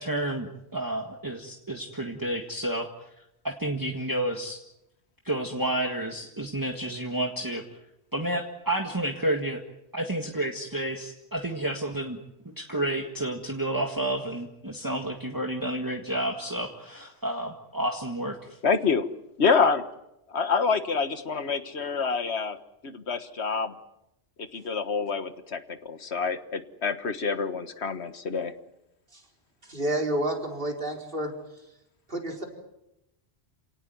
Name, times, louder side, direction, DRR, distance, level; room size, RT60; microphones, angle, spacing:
voice 1, 0.0-2.9 3.4-4.6 5.2-7.6 8.1-9.6 9.9-12.2 12.4-18.4, right 1 dB, 20° right, 2 dB, 1.8 m, -30 dB
voice 2, 18.6-19.1 19.4-19.8 20.3-22.6 22.8-23.7 24.5-28.5, left 5 dB, 80° left, 11 dB, 1.7 m, -27 dB
voice 3, 29.6-31.3 32.1-32.4, right 1 dB, 55° right, 2 dB, 4.6 m, -29 dB
28.5 x 18.0 x 9.4 m, 0.86 s
omnidirectional pair, 1.1 m